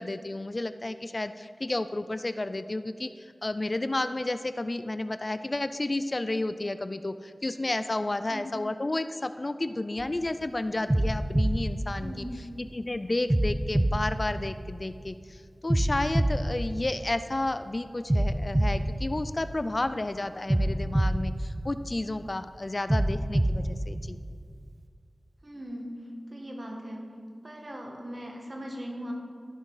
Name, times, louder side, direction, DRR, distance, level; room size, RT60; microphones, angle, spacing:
voice 1, 0.0-12.3 12.6-24.2, left 2 dB, 40° left, 12 dB, 0.3 m, -31 dB
sound 1, 10.0-10.3 10.9-12.7 13.3-15.1 15.7-17.5 18.1-19.9 20.5-22.3 22.9-24.7, right 1 dB, 25° right, 0.5 m, -27 dB
voice 2, 12.0-12.4 25.4-26.0 26.3-27.1 27.4-29.1, equal, 40° right, 0 dB, 1.8 m, -39 dB
13.5 x 6.1 x 5.6 m, 2.3 s
wide cardioid pair, 65°, 0 cm